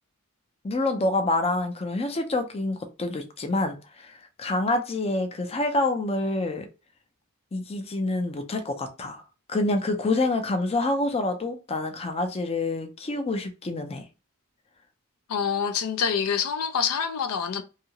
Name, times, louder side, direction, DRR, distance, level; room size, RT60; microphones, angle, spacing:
voice 1, 0.6-6.7 7.5-9.2 9.5-14.0, left 2 dB, 30° left, 0.5 m, -27 dB
voice 2, 15.3-17.6, left 7 dB, 90° left, 0.4 m, -26 dB
2.7 x 2.4 x 2.8 m
head